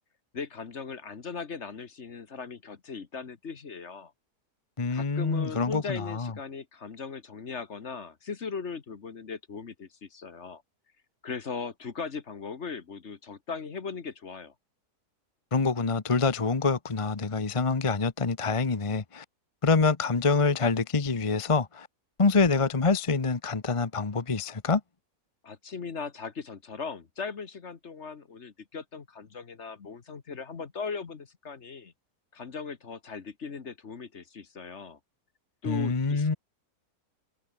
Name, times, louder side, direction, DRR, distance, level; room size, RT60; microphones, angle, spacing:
voice 1, 0.3-4.1 4.9-10.6 11.2-14.5 25.4-31.9 32.3-35.0 35.6-36.4, left 5 dB, 45° left, 1.7 m, -38 dB
voice 2, 4.8-6.3 15.5-19.2 19.6-21.9 22.2-24.8 35.7-36.3, left 4 dB, 25° left, 0.9 m, -26 dB
omnidirectional pair, 1.7 m